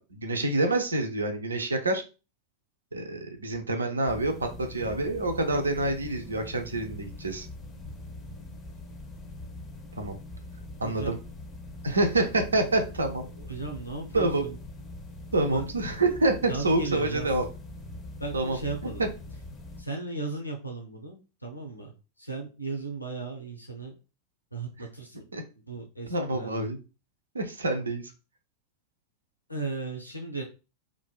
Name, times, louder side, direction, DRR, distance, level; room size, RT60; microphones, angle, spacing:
voice 1, 0.0-2.0 2.9-7.5 10.0-10.1 10.8-11.2 11.8-13.3 14.1-14.4 15.3-17.4 18.3-18.6 19.0-19.1 25.3-25.4 26.1-26.8 27.3-28.0, right 2 dB, 75° right, 6 dB, 0.4 m, -27 dB
sound 1, 4.1-19.8, left 2 dB, 25° left, 0.5 m, -42 dB
voice 2, 10.8-11.1 13.5-14.6 15.4-15.6 16.4-17.3 18.2-19.0 19.8-21.9 22.2-23.9 24.5-25.2 25.7-26.7 29.5-30.4, right 3 dB, 85° left, 2 dB, 0.5 m, -36 dB
2.5 x 2.1 x 2.3 m, 0.31 s
figure-of-eight pair, 90°, 0 cm